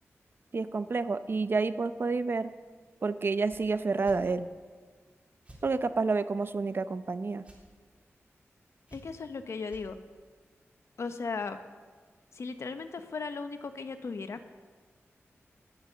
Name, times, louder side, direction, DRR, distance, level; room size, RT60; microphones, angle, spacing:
voice 1, 0.5-2.5 3.0-4.5 5.6-7.4, right 4 dB, 50° right, 12 dB, 0.7 m, -29 dB
sound 1, 3.5-3.6 4.0-4.2 5.4-5.6 7.4-7.6 8.9-9.3 9.7-9.9, right 1 dB, 25° right, 3.6 m, -51 dB
voice 2, 8.9-10.0 11.0-11.6 12.3-14.4, left 4 dB, 70° left, 9 dB, 0.9 m, -36 dB
19.5 x 7.2 x 6.9 m, 1.5 s
wide cardioid pair, 100°, 5 cm